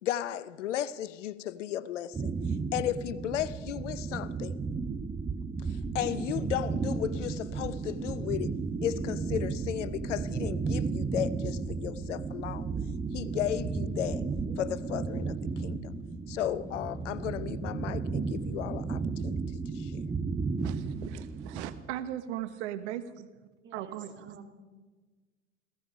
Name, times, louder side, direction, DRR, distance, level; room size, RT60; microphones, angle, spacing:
voice 1, 0.0-2.3 2.7-4.6 5.9-12.7 13.1-14.2 14.6-15.9 16.3-19.4 19.7-20.1, left 11 dB, 85° left, 0.7 m, -34 dB
sound 1, 2.1-21.8, right 4 dB, 15° right, 1.0 m, -34 dB
sound 2, 13.4-19.7, left 1 dB, 10° left, 1.5 m, -47 dB
voice 2, 20.6-23.3 23.7-24.4, right 12 dB, 70° right, 1.1 m, -38 dB
voice 3, 23.6-24.6, right 6 dB, 35° right, 2.7 m, -49 dB
16.0 x 15.5 x 5.5 m
hypercardioid pair, 85°, 35 cm